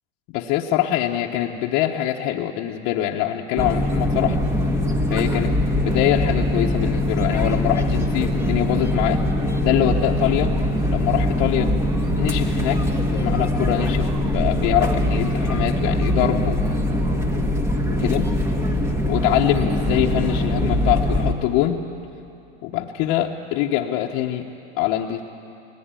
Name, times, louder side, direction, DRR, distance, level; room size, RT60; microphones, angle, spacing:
voice 1, 0.3-4.4 5.1-9.2 9.6-10.5 10.9-11.7 12.1-16.6 17.9-18.2 19.1-21.8 22.6-24.5 24.8-25.2, left 12 dB, 50° left, -1 dB, 1.1 m, -24 dB
sound 1, 3.6-21.3, left 1 dB, 10° right, 1.5 m, -22 dB
19.5 x 16.0 x 9.1 m, 2.7 s
supercardioid pair, 130°, 30 cm